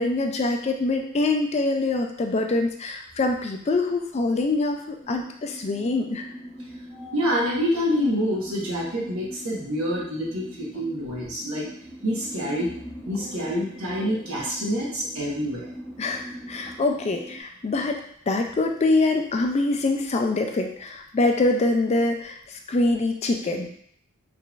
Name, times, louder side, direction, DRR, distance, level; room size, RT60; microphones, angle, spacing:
voice 1, 0.0-6.3 6.9-7.1 16.0-16.2 16.5-18.0 18.3-23.7, left 2 dB, 30° left, 4 dB, 0.3 m, -24 dB
sound 1, 5.0-17.4, equal, ahead, 0.8 m, -42 dB
voice 2, 7.1-11.7 12.0-12.7 13.0-15.7, equal, 80° right, -5 dB, 1.2 m, -27 dB
3.8 x 3.2 x 2.4 m, 0.64 s
head